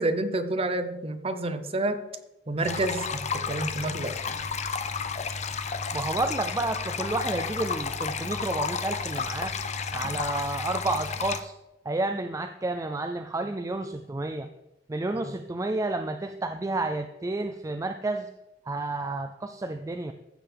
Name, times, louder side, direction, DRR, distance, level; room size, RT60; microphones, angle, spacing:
voice 1, 0.0-2.0 2.5-4.2 10.0-10.2, right 2 dB, 35° right, 9 dB, 0.8 m, -29 dB
sound 1, 2.6-11.4, left 5 dB, 40° left, 0.6 m, -32 dB
voice 2, 5.9-9.5 9.9-11.5 11.8-14.5 14.9-18.3 18.7-20.1, right 2 dB, 20° right, 7 dB, 0.4 m, -30 dB
15.0 x 6.7 x 3.5 m, 0.97 s
head